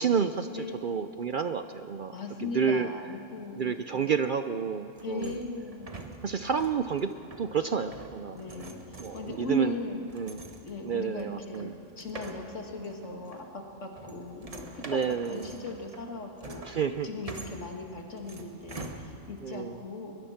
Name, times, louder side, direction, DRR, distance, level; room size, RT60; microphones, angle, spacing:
voice 1, 0.0-2.1 2.4-2.9 3.6-5.4 6.2-7.1 7.4-8.4 9.0-9.7 10.1-10.4 10.8-11.7 14.8-15.5 16.6-17.1 19.4-19.8, right 6 dB, 55° right, 10 dB, 0.6 m, -30 dB
voice 2, 2.1-3.8 5.0-5.9 8.3-10.1 10.6-16.8 17.0-20.1, left 2 dB, 70° left, 2 dB, 2.3 m, -38 dB
sound 1, 4.9-19.5, right 2 dB, 30° right, 1.4 m, -46 dB
21.5 x 21.5 x 5.8 m, 2.5 s
omnidirectional pair, 1.3 m